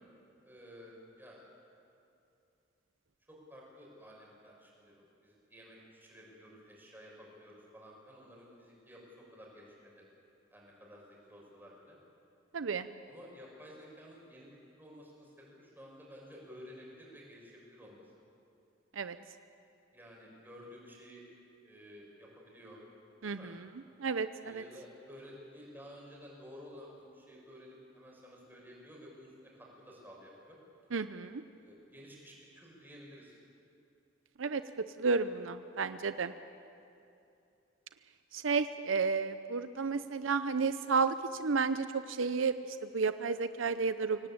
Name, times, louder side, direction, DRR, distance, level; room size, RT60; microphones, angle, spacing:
voice 1, 0.4-1.4 3.3-10.0 10.5-12.0 13.1-18.1 19.9-21.2 21.6-22.8 23.3-23.6 24.4-30.6 31.5-33.4, equal, 10° right, -3 dB, 6.1 m, -53 dB
voice 2, 12.5-12.9 19.0-19.2 23.2-23.5 24.0-24.6 30.9-31.4 34.4-36.3 38.3-42.5 42.9-44.2, right 4 dB, 75° right, 11 dB, 0.7 m, -32 dB
24.5 x 17.5 x 8.8 m, 2.7 s
head